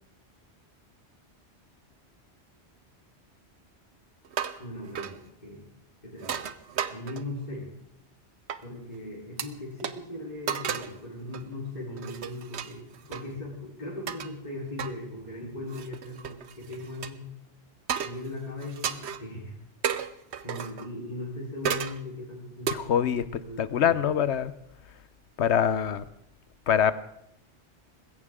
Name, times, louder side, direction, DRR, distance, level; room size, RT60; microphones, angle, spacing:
sound 1, 4.2-4.7 5.0-5.2 6.2-7.4 8.5-8.6 9.4-9.5 9.8-9.9 10.5-11.0 11.3-11.5 12.0-13.2 14.1-14.3 14.8-14.9 15.7-17.1 17.9-18.3 18.6-19.2 19.8-20.9 21.6-22.0 22.7-22.8, right 8 dB, 80° right, 1.1 m, -33 dB
voice 1, 4.6-5.6 6.0-6.4 6.9-7.7 8.6-17.2 18.0-19.6 20.4-23.9, left 1 dB, 40° left, -6 dB, 4.2 m, -39 dB
voice 2, 22.7-23.2 23.6-24.5 25.4-26.0 26.7-26.9, left 8 dB, 85° left, 14 dB, 1.1 m, -24 dB
20.5 x 16.5 x 3.7 m, 0.78 s
omnidirectional pair, 1.1 m